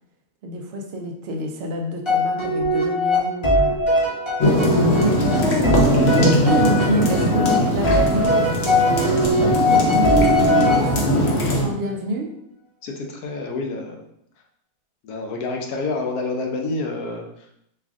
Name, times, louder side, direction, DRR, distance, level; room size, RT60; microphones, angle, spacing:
voice 1, 0.4-3.8 4.9-12.4, right 1 dB, 65° right, 2 dB, 0.6 m, -28 dB
sound 1, 2.0-11.3, left 1 dB, 30° left, 0.5 m, -21 dB
sound 2, 4.4-11.6, equal, 55° left, 0.8 m, -20 dB
voice 2, 12.8-14.0 15.0-17.7, left 3 dB, 80° left, 2 dB, 1.2 m, -28 dB
3.3 x 2.4 x 3.5 m, 0.75 s
omnidirectional pair, 1.6 m